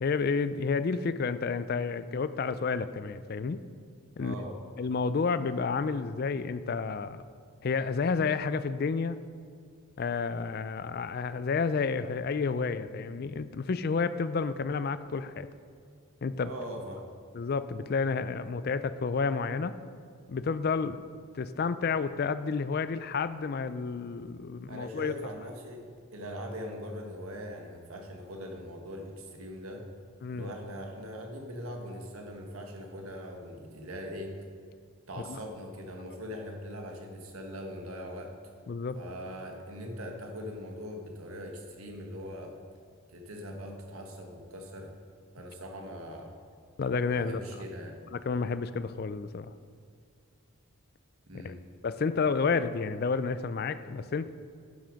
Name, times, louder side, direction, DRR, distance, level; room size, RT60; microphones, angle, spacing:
voice 1, 0.0-3.6 4.2-4.3 4.8-7.2 7.6-9.2 10.0-15.5 16.2-16.5 17.3-19.8 20.3-21.0 21.3-25.1 30.2-30.5 35.3-35.4 38.7-39.0 46.8-47.4 48.1-49.5 51.4-51.5 51.8-54.3, left 5 dB, 45° left, 13 dB, 0.4 m, -30 dB
voice 2, 4.2-4.6 16.4-17.1 24.7-25.8 26.1-29.9 30.3-34.4 35.1-38.4 38.9-42.6 43.1-44.9 45.3-46.4 47.1-48.0 51.3-51.6, equal, 85° right, 2 dB, 1.5 m, -41 dB
11.0 x 6.2 x 5.1 m, 2.2 s
head